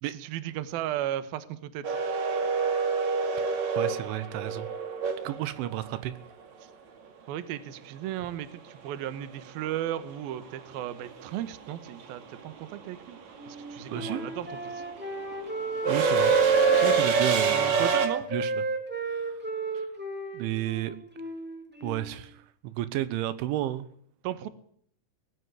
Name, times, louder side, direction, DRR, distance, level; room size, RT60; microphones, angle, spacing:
voice 1, 0.1-1.8 7.3-13.2 13.5-14.8 17.5-18.3 24.2-24.5, right 12 dB, 65° right, 13 dB, 2.7 m, -35 dB
sound 1, 1.8-5.9 8.3-8.4 9.7-10.0 10.3-18.1, right 6 dB, 50° right, 2.7 m, -26 dB
voice 2, 3.5-4.7 5.3-6.1 13.9-14.2 15.9-16.3 16.7-17.9 18.3-18.5 19.1-19.4 20.3-21.0 21.8-23.9, right 14 dB, 85° right, 14 dB, 3.5 m, -32 dB
Wind instrument woodwind instrument, 13.4-17.4 17.7-22.2, right 2 dB, 5° right, 1.3 m, -32 dB
19.5 x 16.0 x 9.6 m, 0.63 s
omnidirectional pair, 5.4 m